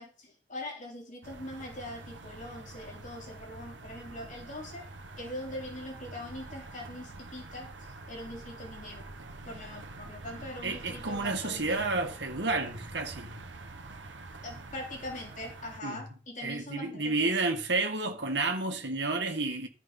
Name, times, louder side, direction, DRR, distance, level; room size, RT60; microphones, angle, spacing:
voice 1, 0.0-4.9 5.2-9.1 9.4-11.9 14.4-17.3, left 1 dB, 45° left, 3.2 m, -42 dB
sound 1, 1.2-15.8, right 2 dB, 80° right, 1.2 m, -46 dB
voice 2, 10.6-13.3 15.8-16.0 16.4-19.7, right 3 dB, 65° right, 1.9 m, -31 dB
13.0 x 5.9 x 5.5 m
head